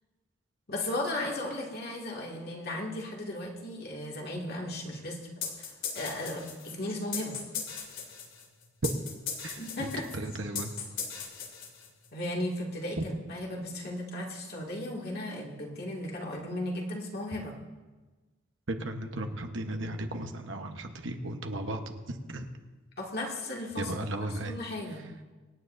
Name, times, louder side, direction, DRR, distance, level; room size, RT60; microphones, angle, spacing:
voice 1, 0.7-7.3 9.6-10.0 12.1-17.6 23.0-23.9 24.4-25.0, left 1 dB, 55° left, -2 dB, 2.2 m, -36 dB
sound 1, 5.4-12.1, left 7 dB, 90° left, 2.3 m, -38 dB
voice 2, 9.4-10.8 18.7-22.5 23.8-24.5, right 1 dB, 70° right, 5 dB, 1.1 m, -36 dB
24.5 x 9.6 x 2.6 m, 1.2 s
head